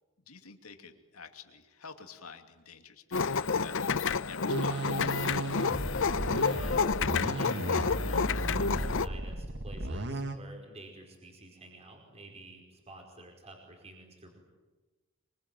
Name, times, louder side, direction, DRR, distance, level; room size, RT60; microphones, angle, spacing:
voice 1, 0.3-3.8 4.1-5.3, left 5 dB, 85° left, 6 dB, 2.7 m, -49 dB
sound 1, 3.1-9.1, left 5 dB, 60° left, 0.8 m, -29 dB
sound 2, 4.5-10.4, right 1 dB, 55° right, 1.9 m, -35 dB
voice 2, 6.5-14.4, right 2 dB, 30° right, 1 dB, 5.0 m, -50 dB
25.5 x 24.5 x 9.2 m, 1.2 s
head